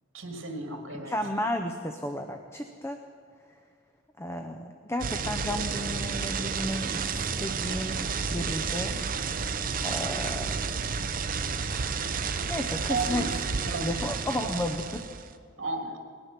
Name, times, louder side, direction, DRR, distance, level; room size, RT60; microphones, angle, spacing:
voice 1, 0.1-1.1 12.9-13.4 13.7-14.0 14.4-14.6 15.6-16.0, right 3 dB, 80° right, 4 dB, 1.9 m, -33 dB
voice 2, 1.0-3.0 4.2-9.0 9.8-10.5 12.5-13.4 13.8-15.0, left 1 dB, 15° left, 5 dB, 0.6 m, -33 dB
sound 1, 5.0-15.3, right 5 dB, 45° right, 0.7 m, -31 dB
19.5 x 11.5 x 5.9 m, 2.1 s
head